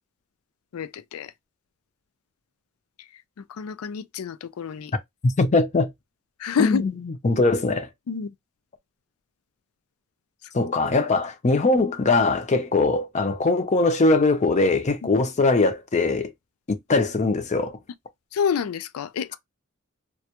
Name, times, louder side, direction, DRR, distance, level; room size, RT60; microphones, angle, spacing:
voice 1, 0.7-1.3 3.5-4.9 6.4-6.8 8.1-8.3 10.6-10.7 18.3-19.3, left 6 dB, 85° left, 0.4 m, -28 dB
voice 2, 5.2-5.9 6.6-7.9 10.5-16.3 16.7-17.8, left 3 dB, 35° left, 0.5 m, -21 dB
2.2 x 2.1 x 2.8 m
head